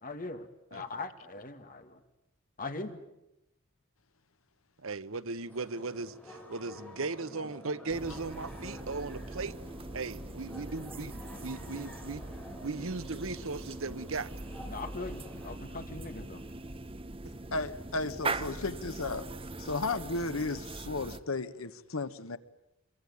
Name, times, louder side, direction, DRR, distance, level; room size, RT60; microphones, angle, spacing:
voice 1, 0.0-2.0 2.6-3.0 14.7-16.4, left 3 dB, 45° left, 2.4 m, -40 dB
voice 2, 4.8-9.5 9.9-11.1 11.4-12.2 12.6-14.3, right 3 dB, 80° right, 1.1 m, -37 dB
sound 1, 5.5-15.5, left 1 dB, 10° left, 5.8 m, -50 dB
sound 2, 7.9-21.2, right 2 dB, 25° right, 1.1 m, -41 dB
voice 3, 17.5-19.3 19.6-22.4, left 3 dB, 85° left, 1.4 m, -34 dB
26.0 x 23.0 x 9.8 m
head